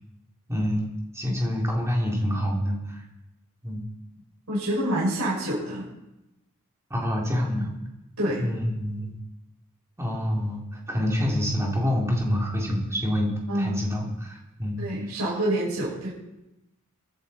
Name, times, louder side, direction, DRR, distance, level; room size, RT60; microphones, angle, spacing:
voice 1, 0.5-0.9 1.1-3.0 3.6-3.8 6.9-7.7 8.4-9.2 10.0-14.8, equal, 15° right, -2 dB, 3.3 m, -27 dB
voice 2, 4.5-5.8 8.2-8.5 13.5-13.8 14.8-16.1, right 1 dB, 85° right, -6 dB, 6.5 m, -27 dB
24.5 x 10.5 x 4.4 m, 0.93 s
head